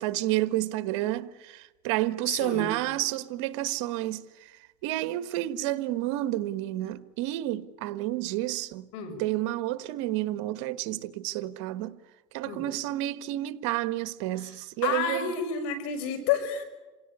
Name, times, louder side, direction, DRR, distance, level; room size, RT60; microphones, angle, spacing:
voice 1, 0.0-4.5 4.8-8.9 9.2-12.0 12.3-15.3, right 15 dB, 85° right, 1.3 m, -30 dB
voice 2, 2.4-2.7 8.9-9.2 12.4-12.6 14.4-16.6, left 7 dB, 85° left, 5.9 m, -30 dB
27.5 x 17.5 x 9.8 m
supercardioid pair, 105°, 16 cm